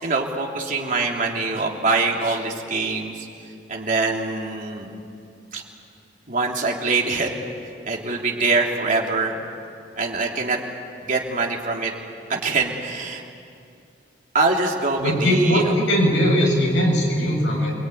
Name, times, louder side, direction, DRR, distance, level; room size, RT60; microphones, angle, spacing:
voice 1, 0.0-3.3 3.7-4.9 5.5-5.6 6.3-7.3 7.9-9.4 10.0-10.6 11.1-11.9 12.3-13.2 14.3-15.7, right 3 dB, 50° right, 0 dB, 3.1 m, -24 dB
voice 2, 15.0-17.7, equal, 85° left, -1 dB, 7.4 m, -19 dB
28.5 x 22.5 x 9.3 m, 2.4 s
head